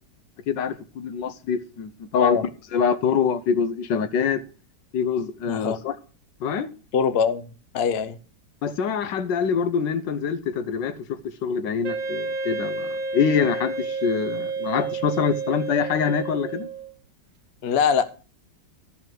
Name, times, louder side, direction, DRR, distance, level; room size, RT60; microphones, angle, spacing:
voice 1, 0.5-2.4 2.7-4.4 4.9-5.9 6.4-6.7 8.6-16.7, left 6 dB, 75° left, 1.5 m, -25 dB
voice 2, 5.5-5.8 6.9-7.4 7.7-8.2 17.6-18.0, left 6 dB, 50° left, 0.8 m, -22 dB
Wind instrument woodwind instrument, 11.8-16.9, right 3 dB, 75° right, 1.7 m, -30 dB
13.0 x 5.8 x 6.1 m
omnidirectional pair, 2.0 m